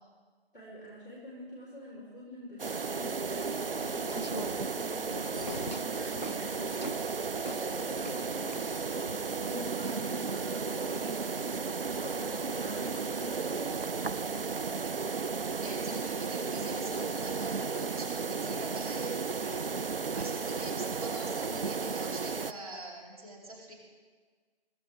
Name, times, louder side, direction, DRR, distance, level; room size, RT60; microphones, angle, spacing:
voice 1, 0.5-6.8 7.5-14.5, left 1 dB, 5° left, -15 dB, 2.6 m, -46 dB
sound 1, 2.6-22.5, right 4 dB, 60° right, 0.4 m, -34 dB
sound 2, 3.8-9.0, equal, 40° left, 0.4 m, -43 dB
sound 3, 5.3-5.6 6.0-6.7 7.2-8.6 9.1-11.9, right 1 dB, 85° right, 3.0 m, -57 dB
voice 2, 7.5-8.0 12.3-12.6 15.6-23.7, right 2 dB, 35° right, -3 dB, 3.2 m, -44 dB
22.0 x 14.5 x 3.4 m, 1.5 s
figure-of-eight pair, 170°, 33 cm